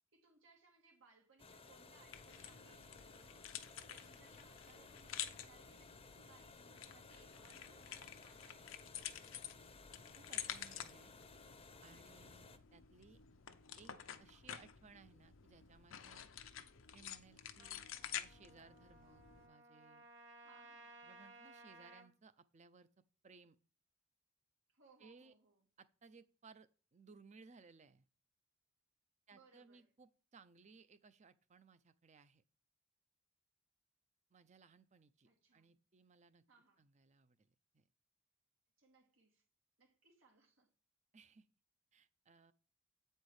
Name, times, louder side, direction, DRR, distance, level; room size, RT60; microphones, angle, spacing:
voice 1, 0.0-3.5 3.8-8.9 20.4-21.1 24.7-25.6 29.3-29.9 35.2-35.7 36.5-36.8 38.8-39.4 39.8-40.7, right 4 dB, 90° right, 2.4 m, -68 dB
sound 1, 1.4-12.6, left 4 dB, 30° left, 0.6 m, -59 dB
sound 2, 2.1-19.5, left 10 dB, 80° left, 0.6 m, -50 dB
voice 2, 10.1-11.1 11.8-13.2 13.8-13.9 14.2-16.3 16.9-20.1 21.0-23.6 25.0-25.3 25.8-28.1 29.3-32.4 34.3-36.4 36.8-37.9 41.1-41.5 41.9-42.5, right 5 dB, 35° right, 0.5 m, -63 dB
Trumpet, 17.6-22.1, right 2 dB, 70° right, 2.3 m, -59 dB
8.1 x 4.5 x 4.8 m
head